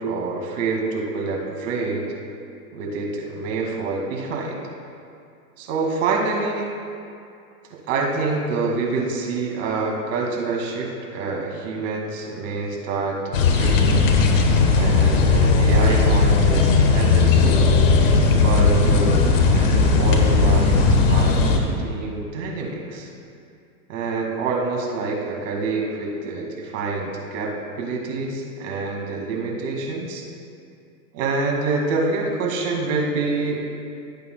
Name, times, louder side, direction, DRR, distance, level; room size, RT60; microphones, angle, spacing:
voice 1, 0.0-2.1 2.7-4.6 5.6-6.7 7.7-14.1 14.7-17.8 18.4-23.1 23.9-30.2 31.1-33.7, right 3 dB, 55° right, 0 dB, 2.2 m, -27 dB
sound 1, 13.3-21.6, left 4 dB, 55° left, 1.3 m, -17 dB
16.0 x 8.5 x 2.3 m, 2.4 s
hypercardioid pair, 130°, 46 cm